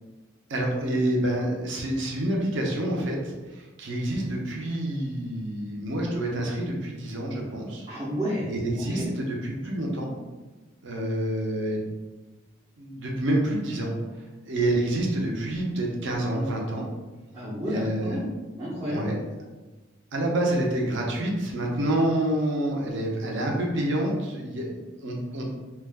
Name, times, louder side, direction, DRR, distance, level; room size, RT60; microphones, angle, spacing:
voice 1, 0.5-7.9 8.5-10.1 10.8-11.8 12.8-13.9 14.4-16.9 17.6-18.2 18.9-19.2 20.1-25.5, right 1 dB, 60° right, -1 dB, 0.6 m, -28 dB
voice 2, 7.9-8.5 9.0-9.1 17.3-18.2 18.6-19.1, equal, 20° right, -10 dB, 0.6 m, -30 dB
2.3 x 2.2 x 3.4 m, 1.2 s
head